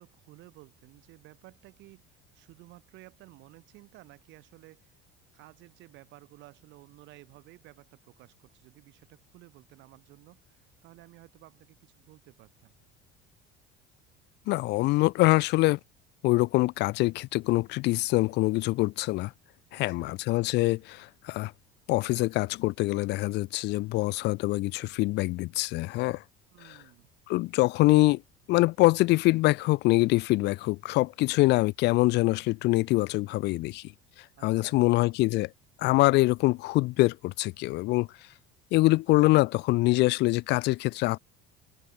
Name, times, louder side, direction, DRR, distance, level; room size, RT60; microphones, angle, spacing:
voice 1, 0.0-5.0 5.3-12.7 19.7-20.2 26.5-27.1 34.4-35.0, right 19 dB, 60° right, 4.3 m, -54 dB
voice 2, 14.5-15.8 16.2-19.3 19.7-21.5 21.9-26.2 27.3-28.2 28.5-33.9 34.4-35.5 35.8-38.1 38.7-41.2, left 20 dB, 55° left, 0.5 m, -24 dB
open air
cardioid pair, 140°, 21 cm